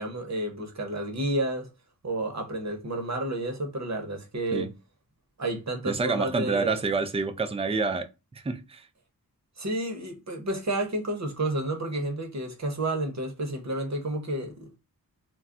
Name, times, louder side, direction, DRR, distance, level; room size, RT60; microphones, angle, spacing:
voice 1, 0.0-1.7 2.0-4.7 5.4-6.8 9.6-14.8, right 1 dB, 50° right, 0.9 m, -31 dB
voice 2, 5.8-8.1 8.4-8.8, right 4 dB, 15° right, 0.4 m, -28 dB
2.3 x 2.2 x 3.7 m
wide cardioid pair, 60°, 36 cm